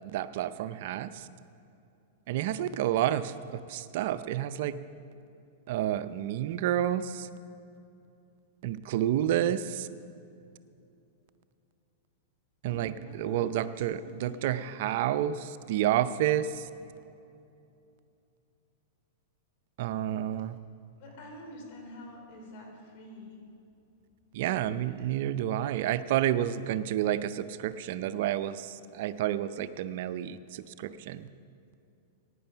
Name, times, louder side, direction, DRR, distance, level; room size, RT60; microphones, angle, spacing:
voice 1, 0.1-1.3 2.3-4.7 5.7-7.3 8.6-9.9 12.6-12.9 13.2-16.7 19.8-20.6 24.3-31.3, right 11 dB, 60° right, 13 dB, 0.5 m, -30 dB
voice 2, 12.7-14.7 16.5-16.6 20.4-20.5 21.0-23.4 25.0-25.1, left 1 dB, 55° left, 2 dB, 3.7 m, -47 dB
16.5 x 9.7 x 5.7 m, 2.6 s
hypercardioid pair, 135°, 0 cm